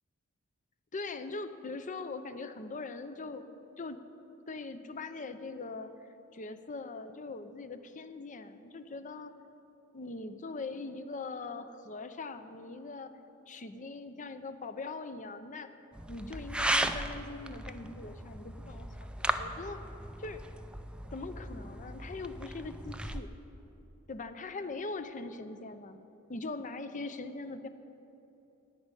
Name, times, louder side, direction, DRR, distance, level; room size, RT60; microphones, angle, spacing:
voice 1, 0.9-3.5 3.8-4.0 4.5-5.9 6.3-9.3 9.9-13.1 13.5-15.7 16.1-19.8 20.2-20.4 21.1-23.3 24.1-26.0 26.3-27.7, left 3 dB, 35° left, 10 dB, 0.6 m, -41 dB
sound 1, 15.9-23.2, right 1 dB, 5° right, 0.4 m, -36 dB
16.0 x 5.3 x 9.8 m, 2.9 s
head